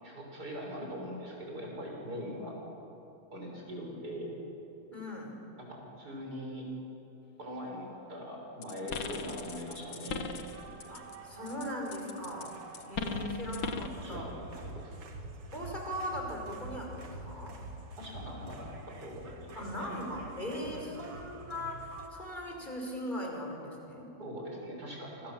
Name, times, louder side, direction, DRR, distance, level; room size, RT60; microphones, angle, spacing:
voice 1, 0.0-2.6 3.3-4.3 5.6-6.7 7.4-10.2 13.7-15.0 18.0-19.9 24.2-25.3, equal, 45° right, -1 dB, 6.8 m, -42 dB
voice 2, 4.9-5.4 10.9-12.6 12.9-14.3 15.5-17.6 19.6-24.2, left 1 dB, 20° left, 0 dB, 5.7 m, -39 dB
sound 1, 8.6-11.2 11.5-14.0, left 5 dB, 60° left, 2.0 m, -39 dB
sound 2, 8.8-22.1, right 2 dB, 85° right, 3.0 m, -47 dB
28.0 x 26.5 x 7.6 m, 2.9 s
omnidirectional pair, 2.4 m